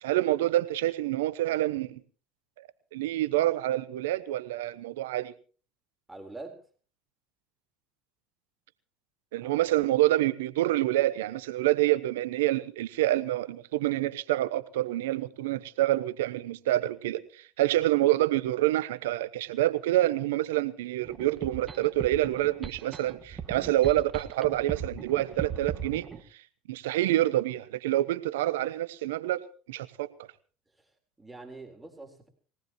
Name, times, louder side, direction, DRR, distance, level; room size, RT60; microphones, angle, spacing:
voice 1, 0.0-2.0 2.6-5.3 9.3-26.1 26.3-26.4 26.7-29.4 29.7-30.1, right 15 dB, 80° right, 15 dB, 0.9 m, -27 dB
voice 2, 6.1-6.6 9.4-9.6 30.7-30.9 31.2-32.3, right 2 dB, 10° right, 3 dB, 4.1 m, -45 dB
sound 1, 21.0-26.2, right 6 dB, 35° right, 1.7 m, -38 dB
22.0 x 18.0 x 3.1 m, 0.39 s
hypercardioid pair, 75°, 0 cm